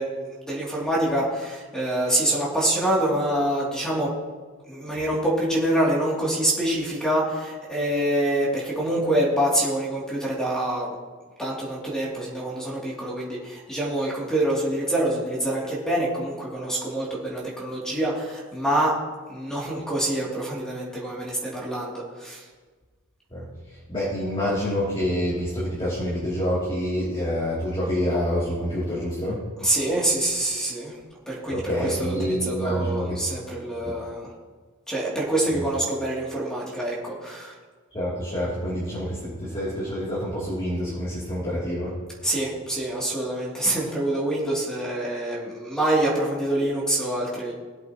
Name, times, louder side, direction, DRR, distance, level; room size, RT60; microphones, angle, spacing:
voice 1, 0.0-4.1 4.7-10.9 11.4-18.9 19.3-22.4 29.6-30.9 31.3-34.3 34.9-37.5 42.2-47.5, right 1 dB, 5° left, -5 dB, 2.8 m, -26 dB
voice 2, 23.9-29.4 31.5-33.2 33.8-34.0 35.5-35.7 37.9-41.9, equal, 25° left, -8 dB, 2.9 m, -27 dB
20.5 x 8.0 x 3.0 m, 1.4 s
head